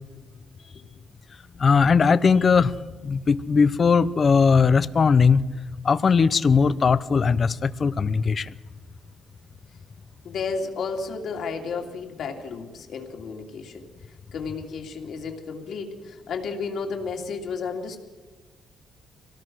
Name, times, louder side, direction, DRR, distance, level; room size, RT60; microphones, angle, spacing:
voice 1, 1.6-2.7 3.0-5.4 5.8-8.5, left 5 dB, 30° left, 17 dB, 0.6 m, -19 dB
voice 2, 10.2-13.8 14.3-18.0, left 5 dB, 55° left, 2 dB, 2.7 m, -32 dB
25.5 x 18.0 x 6.3 m, 1.2 s
cardioid pair, 180°, 0 cm